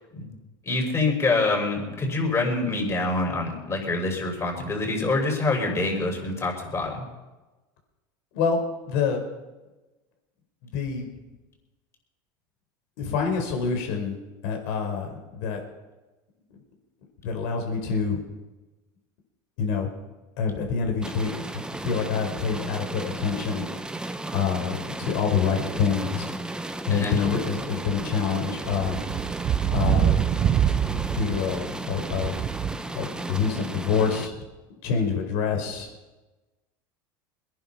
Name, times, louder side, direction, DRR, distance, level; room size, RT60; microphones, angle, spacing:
voice 1, 0.6-7.0 26.9-27.2, left 3 dB, 25° left, 1 dB, 6.3 m, -26 dB
voice 2, 8.8-9.2 10.7-11.1 13.0-14.2 14.4-15.6 17.2-18.2 19.6-19.9 20.4-23.6 24.3-26.3 26.9-29.1 29.7-30.2 30.9-32.4 32.7-34.4 34.8-35.9, left 6 dB, 70° left, 3 dB, 5.1 m, -26 dB
sound 1, 21.0-34.3, right 2 dB, 5° right, 1.1 m, -35 dB
sound 2, 27.6-27.7 28.2-32.8, right 10 dB, 40° right, 0.9 m, -25 dB
23.0 x 10.5 x 5.9 m, 1.1 s
supercardioid pair, 100°, 11 cm